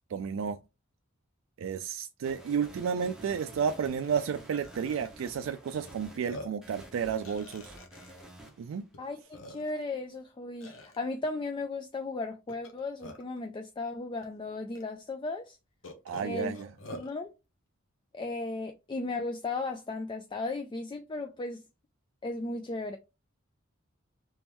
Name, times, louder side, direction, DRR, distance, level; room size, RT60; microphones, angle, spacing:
voice 1, 0.1-0.6 1.6-7.7 8.6-8.9 16.1-16.7, right 7 dB, 90° right, 0.3 m, -32 dB
sound 1, 2.2-6.2 6.6-9.1, right 1 dB, 5° right, 0.9 m, -50 dB
Burping eructation, 2.7-2.8 3.2-3.4 4.0-4.2 4.5-5.2 5.8-5.9 6.2-6.7 7.2-8.2 8.9-9.0 9.3-9.9 10.6-11.0 12.5-13.4 14.2-14.3 14.7-14.8 15.8-17.1, left 1 dB, 75° left, 0.9 m, -46 dB
voice 2, 9.0-15.6 16.2-16.6 16.9-17.3 18.1-21.6 22.2-23.0, left 3 dB, 25° left, 0.3 m, -36 dB
3.5 x 3.1 x 3.0 m
head